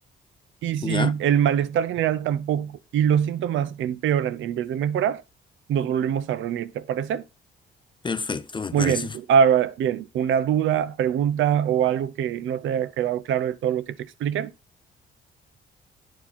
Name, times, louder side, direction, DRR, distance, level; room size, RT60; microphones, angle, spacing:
voice 1, 0.6-5.2 5.7-7.3 8.7-14.5, right 8 dB, 80° right, 0.7 m, -23 dB
voice 2, 8.0-9.1, left 4 dB, 25° left, 0.6 m, -28 dB
9.2 x 4.6 x 4.3 m
cardioid pair, 90°, 20 cm